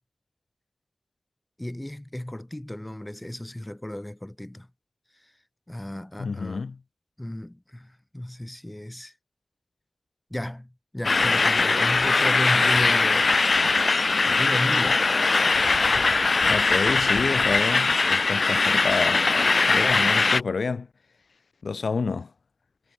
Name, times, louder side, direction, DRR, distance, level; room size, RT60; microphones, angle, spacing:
voice 1, 1.6-4.7 5.7-6.6 7.2-9.1 10.3-13.3 14.3-15.1, left 1 dB, 15° left, 1.0 m, -34 dB
voice 2, 6.2-6.8 16.5-19.3 19.7-20.9 21.6-22.3, left 4 dB, 85° left, 1.7 m, -28 dB
sound 1, 11.0-20.4, left 3 dB, 60° left, 0.4 m, -21 dB
wide cardioid pair, 90°, 0 cm